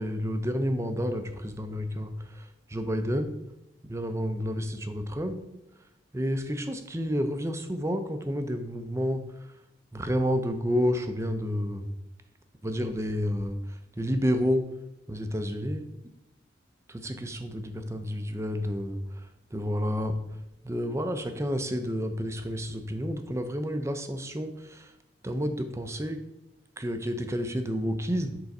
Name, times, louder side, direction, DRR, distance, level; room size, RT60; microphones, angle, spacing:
voice 1, 0.0-3.3 3.9-5.4 6.1-9.2 9.9-11.9 12.6-14.7 15.1-15.8 16.9-19.2 19.5-20.1 20.6-24.9 25.2-26.2 26.8-28.4, equal, 15° right, 7 dB, 0.5 m, -30 dB
7.2 x 3.9 x 5.3 m, 0.88 s
head